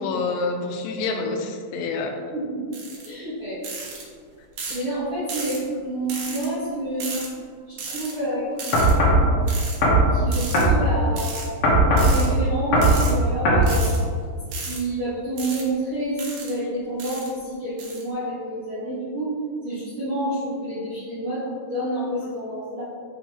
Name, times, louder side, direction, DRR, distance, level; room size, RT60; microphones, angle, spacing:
voice 1, 0.0-2.1 7.1-7.3, left 3 dB, 80° left, 4 dB, 2.3 m, -27 dB
sound 1, 2.7-3.1 3.6-4.0 4.6-4.8 5.3-5.6 6.1-6.5 7.0-7.3 7.8-8.1 8.6-8.9 9.5-9.8 10.3-10.6 11.2-11.5 12.0-12.3 12.8-13.1 13.6-14.0 14.5-14.8 15.4-15.6 16.2-16.5 17.0-17.3 17.8-18.0, right 4 dB, 75° right, 1.4 m, -34 dB
voice 2, 3.0-3.6 4.7-7.2 7.7-9.4 10.1-11.5 11.8-13.9 14.6-19.3 19.6-22.8, right 1 dB, 55° right, -11 dB, 1.5 m, -29 dB
sound 2, 8.7-9.2 9.8-10.1 10.5-10.8 11.6-12.1 12.7-13.0 13.4-13.7, right 1 dB, 65° left, 1.6 m, -17 dB
6.2 x 5.5 x 3.0 m, 2.1 s
omnidirectional pair, 4.3 m